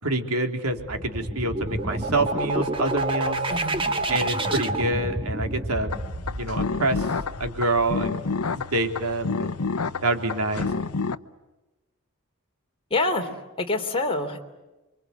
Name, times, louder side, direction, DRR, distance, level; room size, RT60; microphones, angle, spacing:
voice 1, 0.0-3.4 4.1-5.9 6.3-7.1 7.4-8.2 8.5-9.5 10.0-10.7, right 2 dB, 75° right, 5 dB, 3.4 m, -26 dB
sound 1, 0.8-8.3, right 2 dB, 25° right, 1.7 m, -29 dB
voice 2, 3.5-3.9 12.9-14.4, left 2 dB, 25° left, 2 dB, 3.5 m, -27 dB
sound 2, 5.9-11.2, left 4 dB, 75° left, 0.9 m, -29 dB
29.0 x 24.5 x 8.2 m, 1.1 s
head